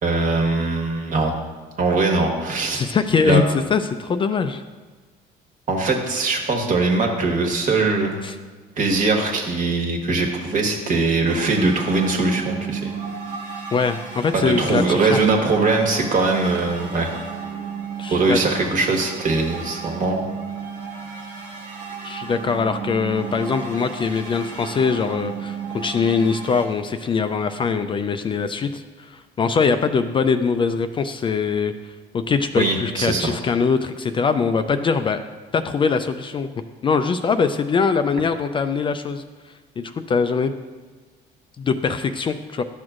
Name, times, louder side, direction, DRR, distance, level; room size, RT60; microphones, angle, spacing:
voice 1, 0.0-1.3 1.8-2.8 3.2-3.4 5.7-8.2 8.8-12.9 14.3-17.1 18.1-20.2 32.6-33.3, right 3 dB, 50° right, 2 dB, 1.4 m, -21 dB
voice 2, 2.7-4.6 8.2-8.4 13.7-15.2 18.0-18.6 22.0-35.2 35.5-36.5 36.8-39.2 39.8-40.5 41.6-42.6, left 5 dB, 30° left, 9 dB, 0.3 m, -22 dB
sound 1, 11.2-26.7, right 6 dB, 90° right, 1.6 m, -34 dB
12.0 x 6.2 x 2.5 m, 1.4 s
cardioid pair, 110°, 17 cm